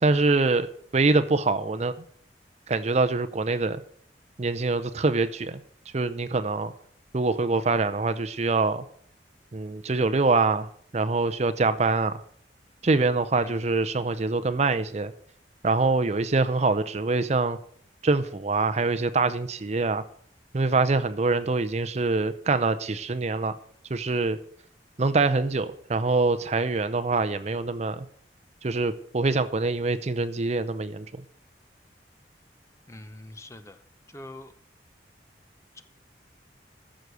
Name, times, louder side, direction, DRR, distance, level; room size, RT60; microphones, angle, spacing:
voice 1, 0.0-0.7 0.9-1.9 2.7-3.8 4.4-5.6 5.9-6.7 7.1-8.8 9.5-10.7 10.9-12.2 12.8-15.1 15.6-17.6 18.0-20.0 20.5-23.5 23.9-24.4 25.0-28.1 28.6-31.2, right 3 dB, 40° right, 11 dB, 0.6 m, -24 dB
voice 2, 13.3-13.6 32.9-33.8 34.1-34.5 35.7-35.8, left 1 dB, 15° left, 11 dB, 0.7 m, -43 dB
14.0 x 6.4 x 6.8 m, 0.63 s
head